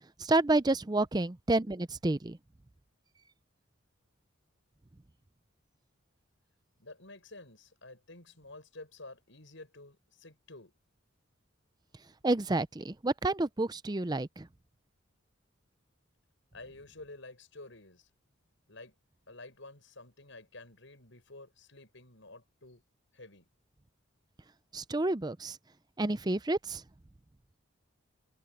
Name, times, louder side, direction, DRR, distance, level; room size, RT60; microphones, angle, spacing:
voice 1, 0.2-2.4 12.2-14.5 24.7-25.6 26.0-26.8, right 2 dB, 20° right, 0.5 m, -29 dB
voice 2, 6.8-10.7 16.5-18.1 18.7-18.9 19.3-22.8 23.1-23.5, left 2 dB, 65° left, 7.4 m, -50 dB
head